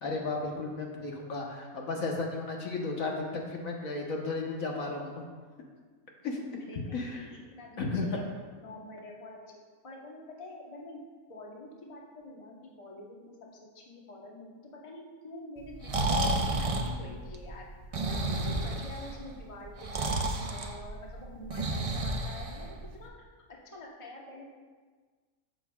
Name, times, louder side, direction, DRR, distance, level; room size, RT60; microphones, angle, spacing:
voice 1, 0.0-5.2 6.2-6.4 6.9-7.3 7.8-8.2, left 3 dB, 65° left, -1 dB, 1.5 m, -34 dB
voice 2, 6.7-8.2 8.6-9.4 9.8-11.0 11.3-13.4 13.7-16.1 16.4-17.6 18.0-23.1 23.6-24.4, left 1 dB, 25° left, -2 dB, 1.1 m, -47 dB
Breathing, 15.6-23.0, right 2 dB, 50° right, 0.4 m, -32 dB
14.0 x 6.6 x 2.4 m, 1.4 s
omnidirectional pair, 1.5 m